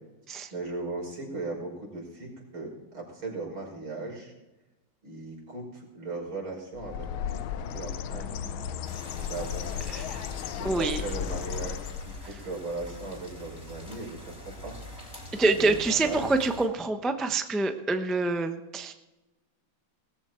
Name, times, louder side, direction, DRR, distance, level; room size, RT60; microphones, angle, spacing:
voice 1, 0.3-4.3 5.0-7.4 7.7-8.5 9.2-9.7 10.5-16.3, right 3 dB, 85° right, -1 dB, 6.4 m, -38 dB
Bird, 6.7-12.3, left 8 dB, 85° left, 1.6 m, -35 dB
sound 1, 8.8-16.7, left 1 dB, 30° left, 4.5 m, -44 dB
voice 2, 9.9-10.2 10.6-11.0 15.3-18.9, right 3 dB, ahead, 6 dB, 0.4 m, -26 dB
19.0 x 14.0 x 4.5 m, 1.0 s
omnidirectional pair, 2.2 m